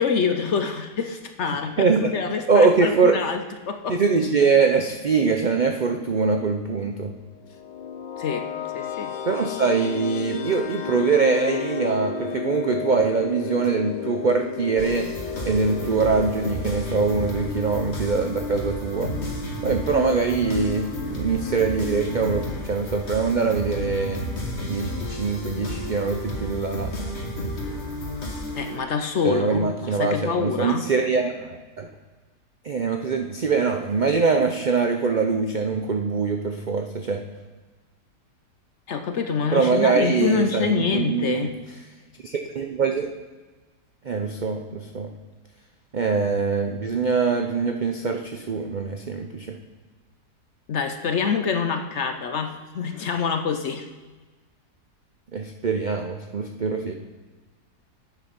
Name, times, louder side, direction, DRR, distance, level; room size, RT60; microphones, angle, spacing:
voice 1, 0.0-1.9 2.1-4.0 8.2-8.5 8.7-9.1 28.6-30.9 38.9-41.5 50.7-53.9, left 6 dB, 60° left, 7 dB, 0.8 m, -26 dB
voice 2, 1.8-2.1 2.5-3.2 3.9-7.1 9.3-15.1 15.4-19.1 19.6-24.2 24.6-26.9 29.2-31.9 32.6-37.2 39.5-41.5 42.2-43.1 44.0-45.1 45.9-49.6 55.3-56.9, right 4 dB, 85° right, 4 dB, 0.4 m, -23 dB
sound 1, 7.4-18.2, left 8 dB, 80° left, 0.4 m, -33 dB
sound 2, 14.8-28.8, left 1 dB, 45° left, 1.7 m, -32 dB
8.2 x 8.1 x 5.9 m, 1.3 s
omnidirectional pair, 1.7 m